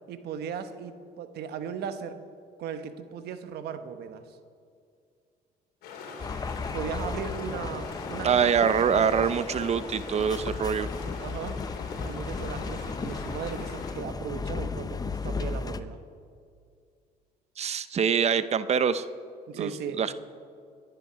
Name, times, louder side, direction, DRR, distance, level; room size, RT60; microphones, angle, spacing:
voice 1, 0.1-2.2 2.6-4.4 6.7-9.5 11.2-11.6 12.0-16.0 19.5-20.0, right 7 dB, 75° right, 9 dB, 1.2 m, -37 dB
sound 1, 5.8-13.9, left 4 dB, 75° left, 2.9 m, -43 dB
sound 2, 6.2-15.8, left 4 dB, 20° left, 0.7 m, -35 dB
voice 2, 8.2-10.9 17.6-19.1 19.5-19.7 20.0-20.1, right 7 dB, 40° right, 14 dB, 0.7 m, -24 dB
22.0 x 9.2 x 5.8 m, 2.3 s
cardioid pair, 110°, 17 cm